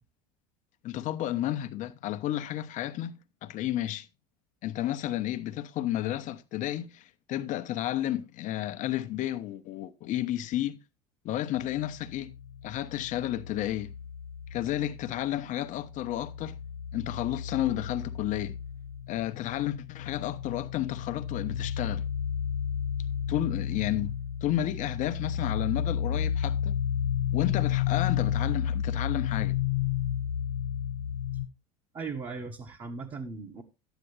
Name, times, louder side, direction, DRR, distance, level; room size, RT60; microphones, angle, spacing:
voice 1, 0.8-4.1 4.6-10.8 11.2-12.3 12.6-13.9 14.5-16.6 16.9-18.6 19.1-22.0 23.3-24.1 24.4-26.8 27.3-29.5, left 13 dB, 45° left, 1.0 m, -32 dB
sound 1, 11.6-15.4 15.7-31.5, left 9 dB, 85° left, 0.6 m, -32 dB
voice 2, 31.9-33.6, right 4 dB, 30° right, 1.6 m, -38 dB
11.5 x 9.2 x 3.3 m
hypercardioid pair, 75°, 17 cm